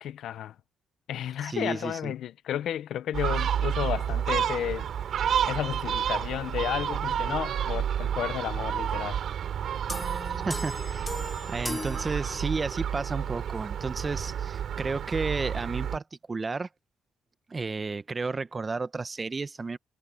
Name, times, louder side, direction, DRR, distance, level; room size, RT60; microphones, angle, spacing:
voice 1, 0.0-0.5 1.1-4.9 5.5-9.2, left 11 dB, 75° left, 1.0 m, -32 dB
voice 2, 1.4-2.1 10.4-11.2 11.5-16.0 16.3-16.7 17.5-19.8, right 4 dB, 25° right, 1.0 m, -32 dB
Gull seagull, 3.1-16.0, right 9 dB, 60° right, 3.2 m, -30 dB
sound 1, 9.9-12.9, left 2 dB, 15° left, 1.1 m, -38 dB
cardioid pair, 110°, 0 cm